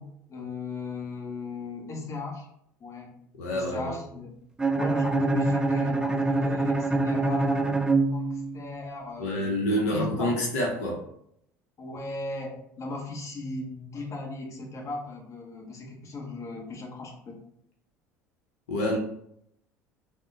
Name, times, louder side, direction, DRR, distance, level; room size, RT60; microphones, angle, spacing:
voice 1, 0.0-2.5 2.8-4.4 4.8-7.8 8.1-10.5 11.8-17.4, left 3 dB, 40° left, 0 dB, 1.0 m, -37 dB
voice 2, 3.4-3.9 9.2-11.0 18.7-19.0, equal, 85° left, -1 dB, 0.7 m, -27 dB
Bowed string instrument, 4.6-8.7, right 3 dB, 10° right, 0.4 m, -25 dB
3.6 x 2.1 x 3.8 m, 0.71 s
hypercardioid pair, 75°, 8 cm